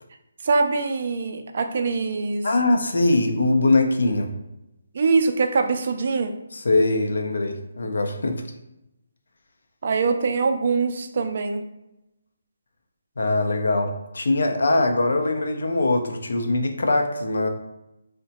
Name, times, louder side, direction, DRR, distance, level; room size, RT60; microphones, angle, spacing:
voice 1, 0.4-2.5 4.9-6.3 9.8-11.6, right 4 dB, 50° right, 6 dB, 0.3 m, -23 dB
voice 2, 2.4-4.3 6.5-8.4 13.2-17.5, left 2 dB, 70° left, 4 dB, 0.5 m, -22 dB
2.7 x 2.1 x 2.9 m, 0.89 s
figure-of-eight pair, 155°, 0 cm